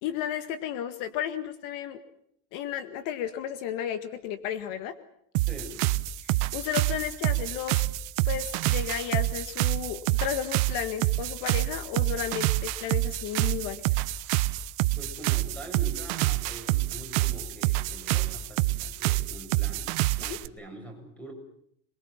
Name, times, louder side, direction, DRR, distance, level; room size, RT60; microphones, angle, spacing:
voice 1, 0.0-2.0 2.5-5.0 6.2-7.8 8.3-13.8 20.3-20.4, left 10 dB, 65° left, 11 dB, 1.9 m, -33 dB
sound 1, 5.3-20.5, right 17 dB, 75° right, 1.1 m, -27 dB
voice 2, 5.5-5.8 15.0-21.3, right 1 dB, 5° left, 4 dB, 7.2 m, -44 dB
27.5 x 22.0 x 7.4 m, 0.68 s
cardioid pair, 170°, 35 cm